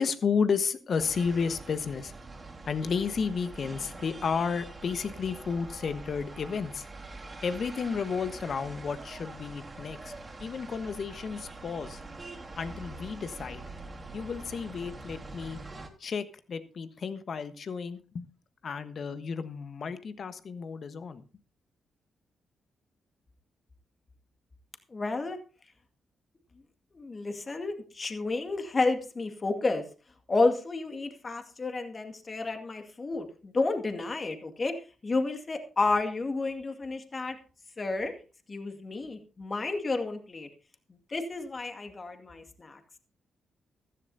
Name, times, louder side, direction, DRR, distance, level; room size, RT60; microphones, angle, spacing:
voice 1, 0.0-2.1 2.6-6.8 7.4-10.1 10.4-12.0 12.5-13.7 14.1-15.6 16.0-18.3 18.6-21.2, left 5 dB, 55° left, 11 dB, 1.3 m, -32 dB
sound 1, 1.0-15.9, right 2 dB, 35° right, 3.3 m, -44 dB
voice 2, 24.9-25.4 26.9-29.8 30.3-34.7 35.0-37.4 37.8-38.1 38.5-40.5 41.1-42.8, left 3 dB, 40° left, 6 dB, 2.1 m, -31 dB
15.0 x 14.5 x 2.7 m, 0.36 s
hypercardioid pair, 40°, 0 cm